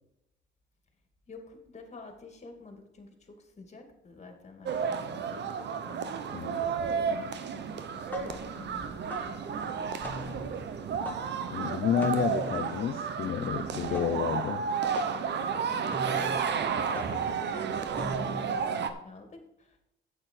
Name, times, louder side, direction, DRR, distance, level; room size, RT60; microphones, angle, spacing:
voice 1, 1.3-5.5 5.8-6.2 7.0-10.7 13.9-14.3 15.5-19.9, left 3 dB, 35° left, 5 dB, 2.2 m, -49 dB
sound 1, 4.7-18.9, right 6 dB, 60° right, 0.9 m, -32 dB
voice 2, 6.3-6.7 11.5-14.7, left 9 dB, 50° left, 12 dB, 0.4 m, -30 dB
sound 2, 8.0-18.6, left 1 dB, 10° left, 1.8 m, -42 dB
8.8 x 7.8 x 4.5 m, 0.86 s
cardioid pair, 90°, 20 cm